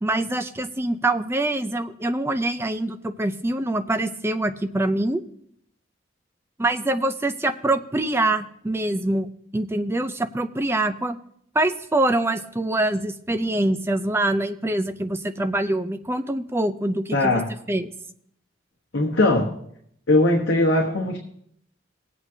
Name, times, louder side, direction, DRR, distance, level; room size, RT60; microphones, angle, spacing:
voice 1, 0.0-5.2 6.6-11.2 11.5-17.4 17.7-17.9, right 2 dB, 15° right, 8 dB, 0.5 m, -24 dB
voice 2, 17.1-17.5 18.9-19.5 20.1-21.2, left 2 dB, 80° left, 0 dB, 1.1 m, -20 dB
19.0 x 8.1 x 2.8 m, 0.70 s
head